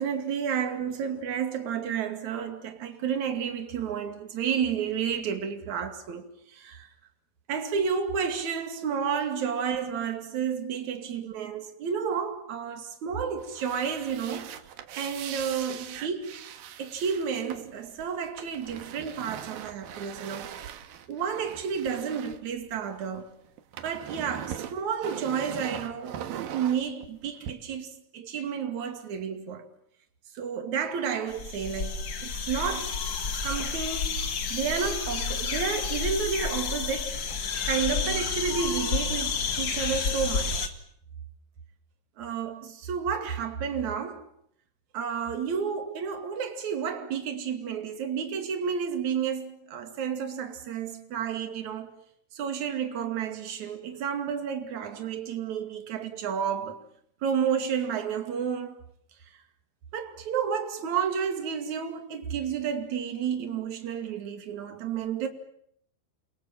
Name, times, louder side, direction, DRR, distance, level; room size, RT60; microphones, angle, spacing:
voice 1, 0.0-6.9 7.5-14.5 14.9-16.3 16.8-20.5 21.1-23.4 23.8-29.7 30.3-33.0 33.4-34.2 34.5-37.2 37.7-40.8 42.2-44.3 44.9-52.0 52.3-56.8 57.2-58.8 59.9-65.3, right 7 dB, 50° right, 3.4 m, -31 dB
sound 1, 13.4-23.2 23.5-27.5, right 10 dB, 70° right, 3.0 m, -41 dB
sound 2, 31.3-40.7, left 5 dB, 50° left, 1.3 m, -30 dB
30.0 x 22.5 x 7.5 m
omnidirectional pair, 4.7 m